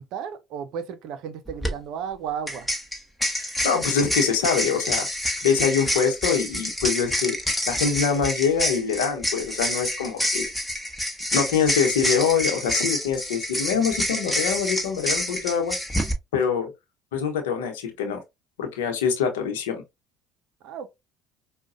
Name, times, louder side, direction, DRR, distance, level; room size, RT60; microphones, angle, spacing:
voice 1, 0.0-2.7 20.6-20.9, right 8 dB, 70° right, 0.6 m, -34 dB
sound 1, 1.5-1.7 2.5-16.1, left 1 dB, 5° left, 1.1 m, -27 dB
voice 2, 3.4-5.1 5.4-7.4 7.7-10.4 11.3-15.8 16.3-16.7 17.1-18.2 18.6-19.8, left 6 dB, 85° left, 0.9 m, -24 dB
4.9 x 2.2 x 2.5 m
hypercardioid pair, 70°, 0 cm